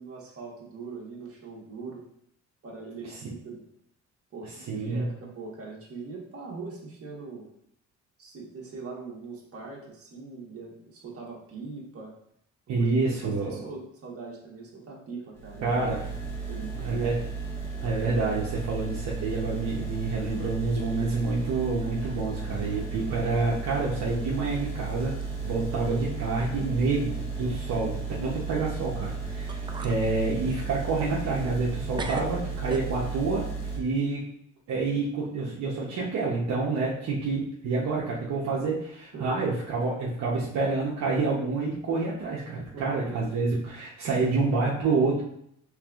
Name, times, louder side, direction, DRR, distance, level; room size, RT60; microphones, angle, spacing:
voice 1, 0.0-2.0 2.6-3.6 4.3-7.5 8.2-12.1 12.8-12.9 13.2-15.8 16.5-17.1 28.1-28.4 39.1-39.4 42.7-43.1, right 4 dB, 50° right, -2 dB, 1.3 m, -41 dB
voice 2, 4.7-5.1 12.7-13.6 15.6-16.0 16.8-17.2 17.8-25.2 25.4-33.5 33.8-34.3 34.7-45.2, right 3 dB, 65° right, -5 dB, 0.9 m, -28 dB
sound 1, 15.3-33.8, right 4 dB, 10° left, 1.5 m, -34 dB
sound 2, 21.5-22.2 22.5-23.0 23.4-23.5 24.4-24.5 25.2-25.3 25.7-26.1 26.4-26.5 29.0-29.1 29.5-30.0 30.4-31.7 32.0-33.3, right 3 dB, 15° right, 0.4 m, -40 dB
4.7 x 3.4 x 2.4 m, 0.72 s
cardioid pair, 90°, 30 cm